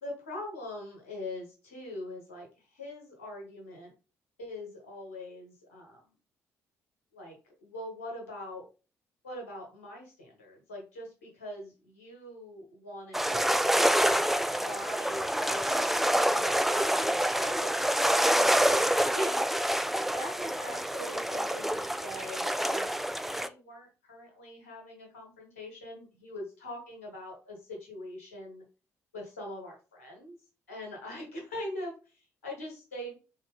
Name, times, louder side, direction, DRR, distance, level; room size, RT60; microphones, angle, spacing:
voice 1, 0.0-3.9 4.4-6.1 7.1-8.7 9.2-14.2 14.5-19.7 20.0-28.6 29.1-30.4 30.7-33.2, left 1 dB, 80° left, -1 dB, 1.2 m, -42 dB
sound 1, 13.1-23.5, equal, 5° right, 0.3 m, -27 dB
3.4 x 2.8 x 3.3 m, 0.33 s
figure-of-eight pair, 45°, 8 cm